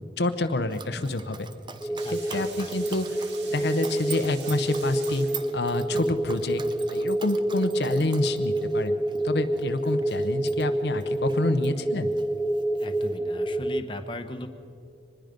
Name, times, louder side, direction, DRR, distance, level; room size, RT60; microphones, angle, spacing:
voice 1, 0.2-1.5 1.9-3.2 3.5-5.3 5.5-6.6 6.9-9.0 9.2-12.1, left 2 dB, 75° left, 8 dB, 0.9 m, -28 dB
Dog, 0.7-11.8 12.1-13.2, right 6 dB, 25° right, 0.7 m, -44 dB
sound 1, 1.8-13.8, right 1 dB, 5° left, 0.5 m, -28 dB
voice 2, 2.0-2.7 12.8-14.5, left 1 dB, 30° left, 6 dB, 1.0 m, -38 dB
sound 2, 2.0-5.8, right 5 dB, 85° right, 2.2 m, -45 dB
24.5 x 20.5 x 5.2 m, 2.5 s
head